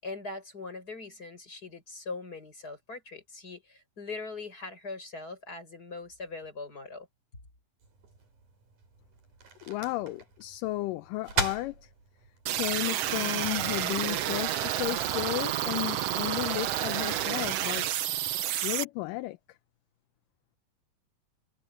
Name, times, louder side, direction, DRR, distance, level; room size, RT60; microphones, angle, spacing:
voice 1, 0.0-7.1, left 3 dB, 25° left, 7.3 m, -41 dB
sound 1, 7.8-13.9, right 3 dB, 60° right, 7.5 m, -39 dB
voice 2, 9.7-11.9 12.6-18.1 18.6-19.4, left 18 dB, 80° left, 2.3 m, -33 dB
sound 2, 12.5-18.8, right 12 dB, 85° right, 1.4 m, -30 dB
omnidirectional pair, 4.0 m